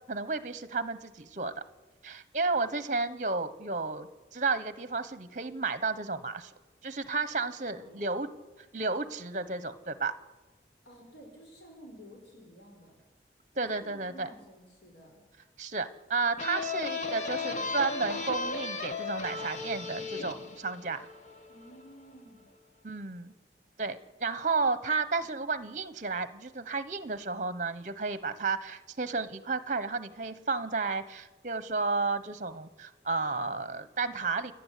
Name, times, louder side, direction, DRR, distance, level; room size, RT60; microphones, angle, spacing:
voice 1, 0.1-1.5 2.0-6.5 6.8-8.3 8.7-10.1 13.6-14.3 15.6-21.1 22.8-23.3 23.8-34.5, right 4 dB, 45° right, 13 dB, 1.2 m, -32 dB
voice 2, 7.7-8.0 10.8-12.9 13.5-15.2 21.5-22.4, equal, 80° left, 0 dB, 5.4 m, -52 dB
sound 1, 16.4-21.8, left 3 dB, 40° left, 1.5 m, -35 dB
29.5 x 11.0 x 8.4 m, 1.2 s
head